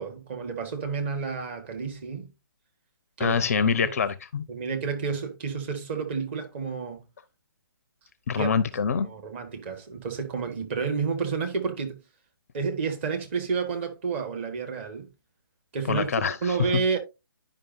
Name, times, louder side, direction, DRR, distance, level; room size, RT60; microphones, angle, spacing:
voice 1, 0.0-2.3 3.2-3.4 3.8-3.9 4.5-7.0 8.4-8.5 8.9-12.0 12.5-15.1 15.7-17.0, right 5 dB, 30° right, 1.4 m, -30 dB
voice 2, 3.2-4.5 8.3-9.1 15.9-16.6, left 6 dB, 40° left, 0.5 m, -25 dB
11.0 x 5.3 x 2.6 m
figure-of-eight pair, 135°, 12 cm